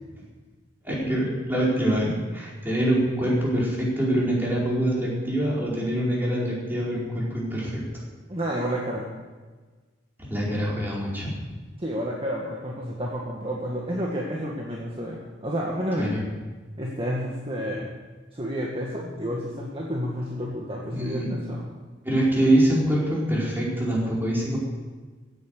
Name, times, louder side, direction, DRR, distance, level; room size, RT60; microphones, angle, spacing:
voice 1, 0.8-7.8 10.3-11.3 16.0-16.2 18.9-19.1 20.9-21.3 22.0-24.6, right 1 dB, 10° right, -6 dB, 4.9 m, -24 dB
voice 2, 8.3-9.0 11.8-16.2 16.8-17.9 18.3-21.2 21.5-21.7, equal, 30° right, -3 dB, 1.8 m, -30 dB
16.5 x 9.7 x 6.6 m, 1.4 s
head